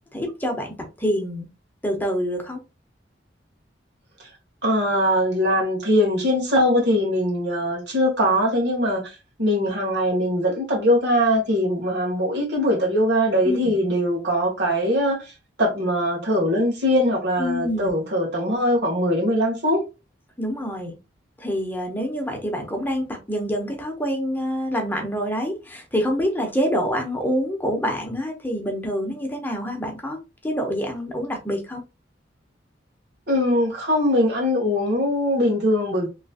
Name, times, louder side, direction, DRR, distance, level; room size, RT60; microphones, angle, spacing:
voice 1, 0.1-1.5 1.8-2.6 13.4-13.7 17.4-17.9 20.4-20.9 21.4-30.2 30.4-31.8, equal, 10° left, 0.8 m, -26 dB
voice 2, 4.6-15.3 15.6-19.8 33.3-36.1, equal, 65° right, 1.5 m, -21 dB
3.1 x 3.0 x 2.8 m
head